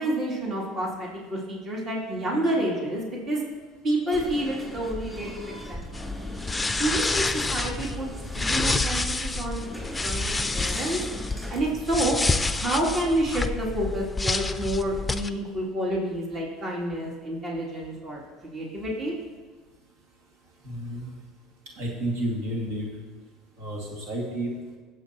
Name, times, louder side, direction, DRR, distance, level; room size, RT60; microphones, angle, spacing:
voice 1, 0.0-3.4 3.8-5.3 5.7-6.1 6.7-8.1 8.4-9.7 10.0-11.0 11.5-12.2 12.6-19.1, right 1 dB, 40° right, -3 dB, 2.8 m, -29 dB
sound 1, 4.1-11.6, equal, 5° right, 3.0 m, -37 dB
sound 2, 5.9-15.3, left 3 dB, 10° left, 0.5 m, -28 dB
voice 2, 20.6-21.1 21.8-22.9 23.6-24.8, right 1 dB, 75° right, -2 dB, 2.2 m, -31 dB
18.0 x 7.6 x 2.9 m, 1.4 s
supercardioid pair, 95°, 0 cm